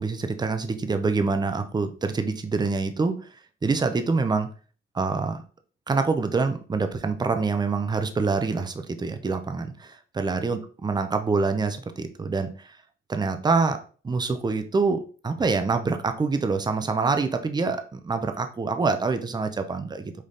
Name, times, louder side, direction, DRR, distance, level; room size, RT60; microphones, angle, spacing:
voice 1, 0.0-3.3 3.6-4.5 4.9-5.4 5.9-12.8 13.1-13.8 14.0-20.1, right 4 dB, 20° right, 8 dB, 0.6 m, -26 dB
5.3 x 2.6 x 3.8 m, 0.39 s
cardioid pair, 90°, 20 cm